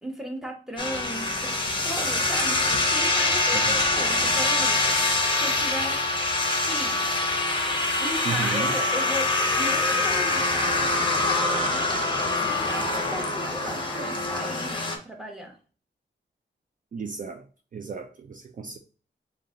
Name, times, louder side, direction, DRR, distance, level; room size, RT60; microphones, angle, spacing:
voice 1, 0.0-6.0 6.7-7.3 8.0-15.6, equal, 5° right, 1.0 m, -36 dB
sound 1, 0.8-15.0, left 2 dB, 25° left, 0.8 m, -24 dB
voice 2, 3.5-3.8 8.2-8.7 16.9-17.5 17.7-18.8, right 5 dB, 45° right, 0.4 m, -34 dB
3.9 x 2.2 x 3.6 m
wide cardioid pair, 95°, 19 cm